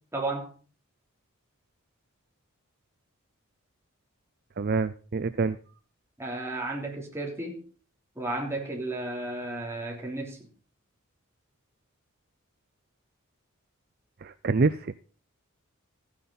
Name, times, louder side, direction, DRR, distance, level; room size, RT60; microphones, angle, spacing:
voice 1, 0.1-0.5 6.2-7.6 8.1-10.4, right 2 dB, 10° right, 3.2 m, -33 dB
voice 2, 4.6-5.6 14.2-15.0, right 4 dB, 45° right, 0.5 m, -26 dB
15.0 x 9.6 x 4.0 m
head